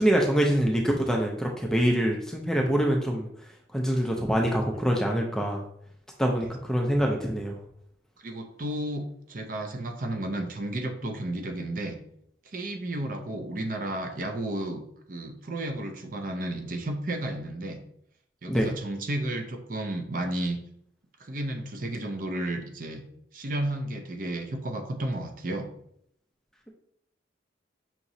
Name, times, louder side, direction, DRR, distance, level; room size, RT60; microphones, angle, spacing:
voice 1, 0.0-3.3 3.7-5.6 6.2-7.6 18.5-18.8, equal, 5° left, 0 dB, 0.4 m, -25 dB
voice 2, 8.2-12.0 12.4-14.8 15.1-17.8 18.4-20.6 21.2-23.0 23.3-25.7, right 1 dB, 45° right, 5 dB, 0.6 m, -32 dB
5.8 x 2.9 x 2.7 m, 0.70 s
head